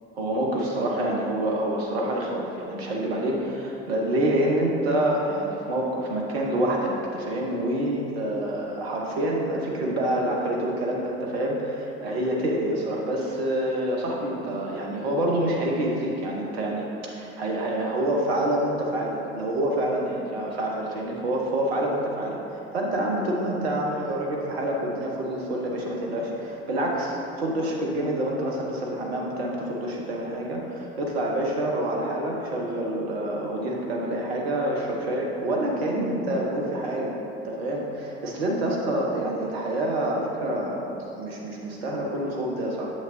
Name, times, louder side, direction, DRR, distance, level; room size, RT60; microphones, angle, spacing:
voice 1, 0.1-37.1 37.4-40.9 41.1-42.9, right 1 dB, 70° right, -1 dB, 1.2 m, -27 dB
8.5 x 7.5 x 2.7 m, 2.8 s
figure-of-eight pair, 60°, 32 cm